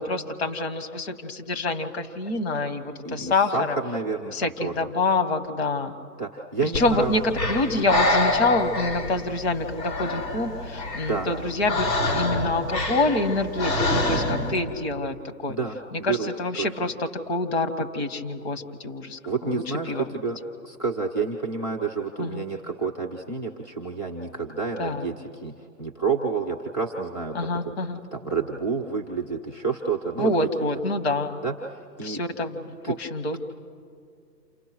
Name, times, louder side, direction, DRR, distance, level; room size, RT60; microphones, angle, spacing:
voice 1, 0.0-3.8 4.3-6.0 6.6-11.9 12.1-15.1 15.4-15.6 15.9-20.1 22.2-22.5 24.8-25.0 27.3-28.0 30.2-31.4 32.0-33.4, left 2 dB, 40° left, 8 dB, 2.0 m, -27 dB
voice 2, 3.0-4.7 6.2-7.1 11.1-11.3 15.5-16.3 16.6-16.7 19.2-25.5 25.8-27.7 28.1-30.5 31.4-32.2 32.8-32.9, right 5 dB, 10° left, -3 dB, 0.6 m, -29 dB
Breathing, 6.7-14.6, left 2 dB, 85° left, 6.1 m, -27 dB
29.5 x 28.0 x 6.2 m, 2.3 s
hypercardioid pair, 155°, 49 cm